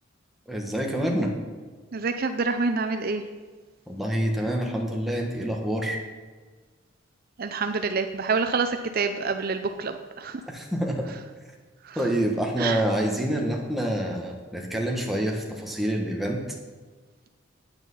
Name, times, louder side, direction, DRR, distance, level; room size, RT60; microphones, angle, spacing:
voice 1, 0.5-1.3 3.9-6.0 10.5-11.0 11.9-16.4, right 1 dB, ahead, 0 dB, 1.5 m, -27 dB
voice 2, 1.9-3.2 7.4-10.4 11.9-12.0 12.6-12.8, right 4 dB, 50° right, 7 dB, 0.6 m, -27 dB
9.1 x 9.0 x 5.6 m, 1.4 s
head